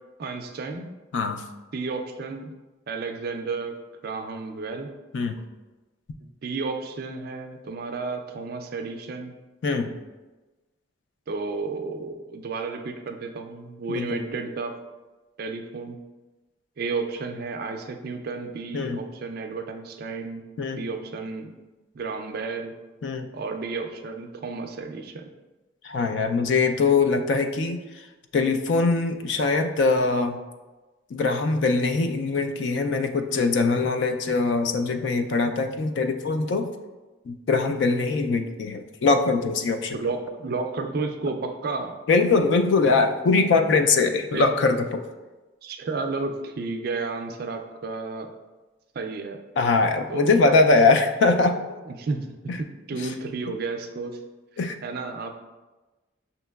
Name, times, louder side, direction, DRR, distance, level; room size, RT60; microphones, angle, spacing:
voice 1, 0.2-0.9 1.7-2.5 2.9-3.7 4.0-4.9 6.2-9.4 11.3-14.7 15.4-16.0 16.8-20.4 20.8-21.5 21.9-22.7 23.3-25.3 39.9-41.9 44.3-44.5 45.6-48.3 49.0-49.4 50.1-50.5 51.9-52.2 52.6-54.2 54.8-55.4, right 4 dB, 50° right, 5 dB, 0.3 m, -32 dB
voice 2, 25.8-27.8 28.3-30.4 31.1-36.7 37.3-40.0 42.1-45.1 49.6-51.6 52.5-52.6 53.0-53.1 54.6-54.8, left 3 dB, 60° left, 6 dB, 0.3 m, -22 dB
6.2 x 2.9 x 2.3 m, 1.2 s
head